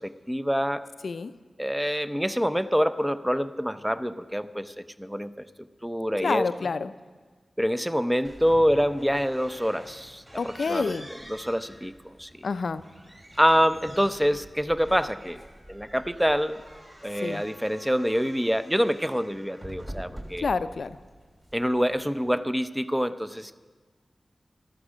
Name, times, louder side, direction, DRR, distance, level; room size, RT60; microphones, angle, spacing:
voice 1, 0.0-0.9 1.6-5.4 5.8-6.5 7.6-10.2 10.7-11.0 11.3-12.3 13.4-15.4 15.7-16.6 17.0-20.5 21.5-23.7, equal, 5° right, 12 dB, 0.6 m, -26 dB
voice 2, 6.2-6.9 10.4-11.1 12.4-12.8 17.2-17.4 20.4-21.0, left 4 dB, 75° left, 13 dB, 0.4 m, -28 dB
sound 1, 8.2-22.3, right 1 dB, 40° right, 3.1 m, -46 dB
13.0 x 12.5 x 6.2 m, 1.4 s
cardioid pair, 55°, 0 cm